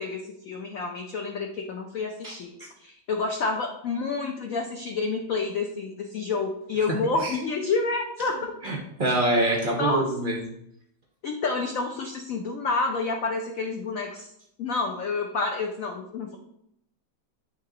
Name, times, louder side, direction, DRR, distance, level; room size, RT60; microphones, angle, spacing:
voice 1, 0.0-2.5 2.8-8.5 9.7-10.1 11.2-14.3 14.6-16.4, left 3 dB, 65° left, 2 dB, 0.8 m, -29 dB
voice 2, 8.6-10.4, right 1 dB, 65° right, 0 dB, 0.5 m, -25 dB
8.5 x 3.3 x 3.8 m, 0.76 s
omnidirectional pair, 2.1 m